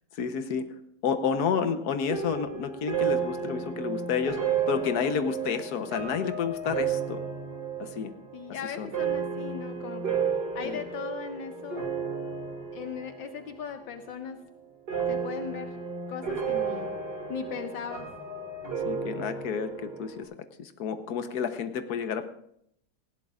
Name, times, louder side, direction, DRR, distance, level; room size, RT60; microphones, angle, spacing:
voice 1, 0.1-0.7 1.0-7.2 7.8-8.1 8.8-8.9 10.6-10.8 18.8-20.3 20.6-22.2, left 6 dB, 60° left, 9 dB, 1.4 m, -30 dB
sound 1, 2.1-13.5 13.8-14.4 14.9-20.2, right 6 dB, 55° right, 3.1 m, -33 dB
voice 2, 8.3-10.2 10.5-11.9 12.7-14.4 15.1-15.7 16.1-16.9 17.3-18.1, left 7 dB, 75° left, 7 dB, 1.5 m, -38 dB
19.0 x 16.0 x 2.5 m, 0.73 s
omnidirectional pair, 2.1 m